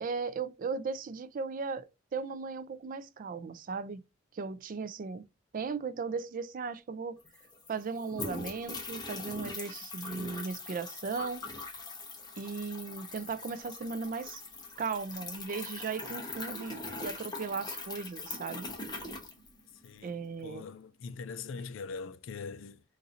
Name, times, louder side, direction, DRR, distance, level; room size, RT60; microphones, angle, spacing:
voice 1, 0.0-4.0 4.3-5.2 5.5-7.2 7.7-11.4 12.4-14.4 14.8-18.7 20.0-20.6, right 4 dB, 45° right, 0.4 m, -37 dB
sound 1, 6.9-7.0 7.2-20.0, left 3 dB, 20° left, 0.9 m, -42 dB
voice 2, 19.8-22.8, left 5 dB, 75° left, 0.4 m, -42 dB
4.1 x 2.6 x 2.5 m
head